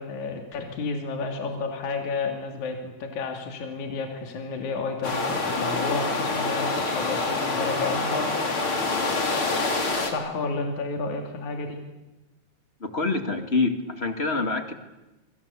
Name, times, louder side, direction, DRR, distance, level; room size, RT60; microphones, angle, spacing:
voice 1, 0.0-8.3 10.1-11.8, left 4 dB, 70° left, 3 dB, 4.0 m, -31 dB
sound 1, 5.0-10.1, left 3 dB, 45° left, 4.1 m, -26 dB
voice 2, 12.8-14.7, left 3 dB, 25° left, 7 dB, 2.0 m, -26 dB
28.0 x 24.5 x 8.4 m, 1.0 s
omnidirectional pair, 3.5 m